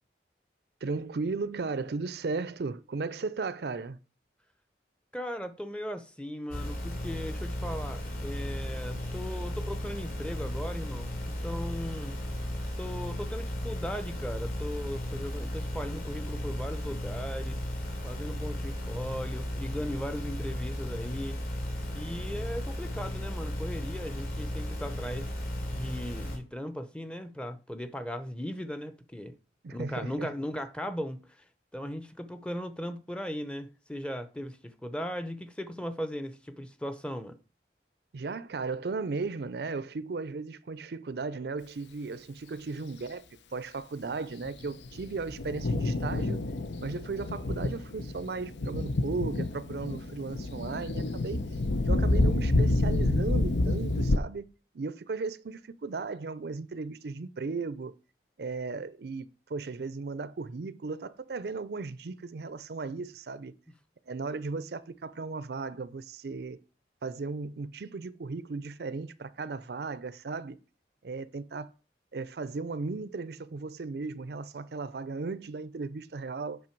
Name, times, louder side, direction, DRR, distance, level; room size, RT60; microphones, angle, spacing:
voice 1, 0.8-4.0 29.6-30.3 38.1-43.2 43.5-46.4 46.8-51.4 51.8-57.9 58.4-63.5 64.1-66.6 67.0-70.6 71.0-71.7 72.1-76.6, right 4 dB, 65° right, 0.5 m, -36 dB
voice 2, 5.1-12.2 12.8-17.6 18.0-21.4 21.9-25.3 25.7-29.4 29.7-31.4 31.7-37.4, equal, 5° left, 0.6 m, -38 dB
sound 1, 6.5-26.4, left 1 dB, 55° left, 3.0 m, -35 dB
Thunder, 44.4-54.2, left 2 dB, 85° left, 0.7 m, -28 dB
8.6 x 5.4 x 4.5 m
head